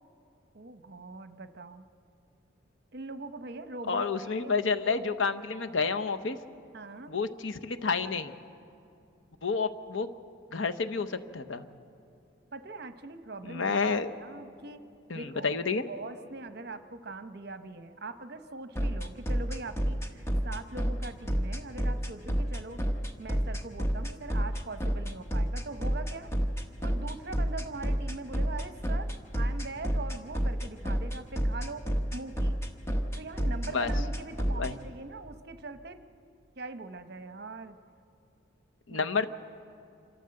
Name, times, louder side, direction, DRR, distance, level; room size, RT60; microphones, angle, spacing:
voice 1, 0.5-1.9 2.9-4.6 4.8-5.0 6.7-7.1 12.5-13.9 14.2-14.8 15.1-15.5 15.9-22.8 23.2-26.3 26.8-32.6 33.1-36.0 36.6-37.8 38.9-39.0, right 3 dB, 55° right, 10 dB, 0.9 m, -42 dB
voice 2, 3.9-6.4 7.1-8.3 9.4-10.1 10.5-11.6 13.4-14.2 15.1-15.9 33.7-33.9 34.5-34.7 38.9-39.3, left 4 dB, 80° left, 9 dB, 0.9 m, -30 dB
sound 1, 18.8-34.7, equal, 15° left, 1.1 m, -28 dB
26.5 x 13.0 x 7.7 m, 2.5 s
head